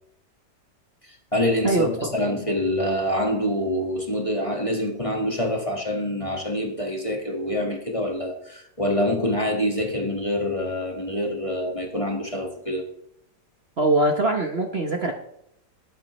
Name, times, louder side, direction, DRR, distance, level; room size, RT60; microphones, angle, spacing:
voice 1, 1.0-12.9, left 1 dB, 20° left, 1.7 m, -26 dB
voice 2, 1.6-2.1 13.8-15.1, right 2 dB, 40° right, 1.2 m, -22 dB
20.0 x 9.3 x 3.2 m
omnidirectional pair, 1.8 m